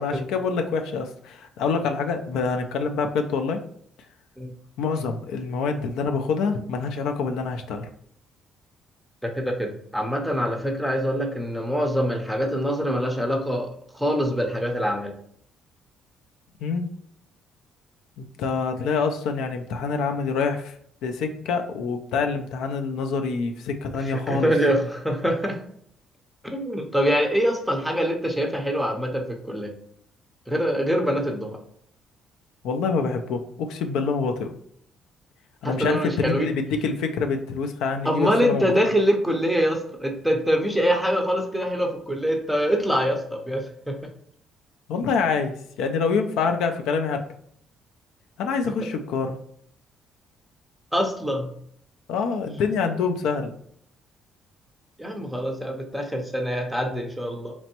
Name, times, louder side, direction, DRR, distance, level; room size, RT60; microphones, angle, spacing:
voice 1, 0.0-3.6 4.8-7.9 16.6-16.9 18.2-20.7 21.0-24.5 32.6-34.5 35.6-38.7 44.9-47.3 48.4-49.4 52.1-53.5, left 5 dB, 90° left, 5 dB, 0.4 m, -26 dB
voice 2, 9.2-13.7 13.9-15.1 24.1-25.6 26.5-29.7 30.5-31.6 35.6-36.5 38.0-44.0 50.9-51.5 55.0-57.5, equal, ahead, 2 dB, 0.5 m, -24 dB
4.3 x 3.0 x 2.9 m, 0.64 s
cardioid pair, 165°, 0 cm